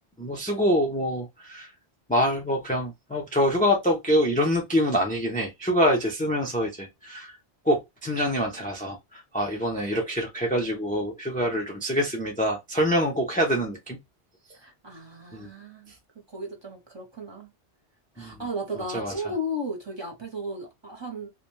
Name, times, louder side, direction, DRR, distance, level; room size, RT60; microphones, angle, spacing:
voice 1, 0.2-1.7 2.1-7.3 7.7-14.0 15.3-15.5 18.2-18.4 18.9-19.1, equal, 15° left, 0.3 m, -25 dB
voice 2, 14.5-15.9 16.3-17.5 18.2-21.3, equal, 30° right, 0.7 m, -35 dB
2.5 x 2.1 x 3.1 m
omnidirectional pair, 1.1 m